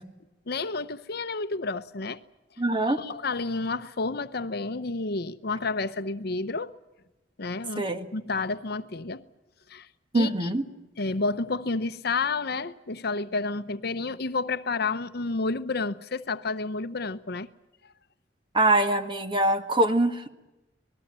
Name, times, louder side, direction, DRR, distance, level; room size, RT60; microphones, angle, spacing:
voice 1, 0.5-2.2 2.9-6.7 7.4-9.2 9.7-9.9 10.1-10.5 11.0-17.5, left 3 dB, 55° left, 0.9 m, -30 dB
voice 2, 2.6-3.0 7.8-8.1 10.1-10.6 18.5-20.3, right 1 dB, 25° right, 1.6 m, -23 dB
26.5 x 20.0 x 7.6 m
head